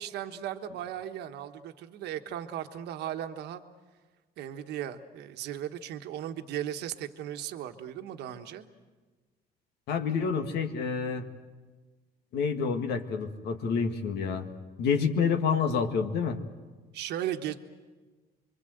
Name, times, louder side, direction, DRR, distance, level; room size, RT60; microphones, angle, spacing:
voice 1, 0.0-3.6 4.4-8.7 16.9-17.5, right 11 dB, 80° right, 7 dB, 1.3 m, -36 dB
voice 2, 9.9-11.2 12.3-14.5 14.8-16.4, left 6 dB, 75° left, 5 dB, 2.0 m, -28 dB
25.5 x 23.5 x 7.9 m, 1.3 s
cardioid pair, 110°, 17 cm